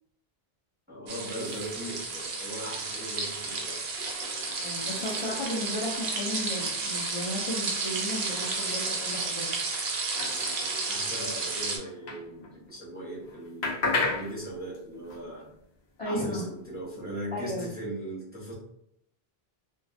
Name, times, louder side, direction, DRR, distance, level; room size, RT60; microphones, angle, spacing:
voice 1, 0.9-3.8 10.9-15.5 16.0-18.5, right 1 dB, 10° right, -6 dB, 0.6 m, -39 dB
sound 1, 1.1-12.8 13.1-17.3, left 3 dB, 85° left, 1.0 m, -39 dB
sound 2, 1.1-11.8, right 3 dB, 55° right, 0.5 m, -32 dB
voice 2, 4.6-9.5 16.0-16.4 17.3-17.7, left 1 dB, 40° left, -6 dB, 0.5 m, -34 dB
2.4 x 2.3 x 2.5 m, 0.73 s
omnidirectional pair, 1.1 m